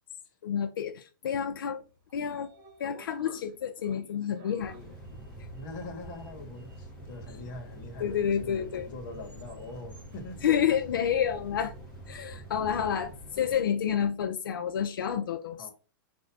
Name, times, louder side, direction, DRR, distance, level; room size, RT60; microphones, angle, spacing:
voice 1, 0.4-1.8 2.1-2.5 2.8-4.7 8.0-8.9 10.4-11.7 12.1-15.7, left 8 dB, 85° left, 0.5 m, -29 dB
Sliding door, 1.7-11.8, right 1 dB, 45° right, 2.0 m, -57 dB
sound 1, 4.6-13.5, right 1 dB, 10° left, 1.6 m, -46 dB
voice 2, 5.5-10.4 15.6-15.7, left 2 dB, 40° left, 1.2 m, -43 dB
4.2 x 2.6 x 3.3 m
hypercardioid pair, 145°, 11 cm